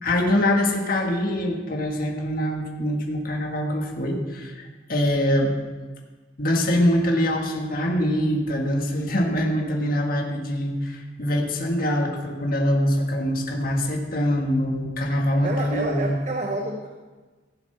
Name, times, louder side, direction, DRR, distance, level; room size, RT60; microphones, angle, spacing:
voice 1, 0.0-5.6 6.4-16.1, equal, 50° left, 1 dB, 1.6 m, -24 dB
voice 2, 15.4-16.9, right 1 dB, 40° right, 2 dB, 0.9 m, -28 dB
15.5 x 7.3 x 5.6 m, 1.3 s
head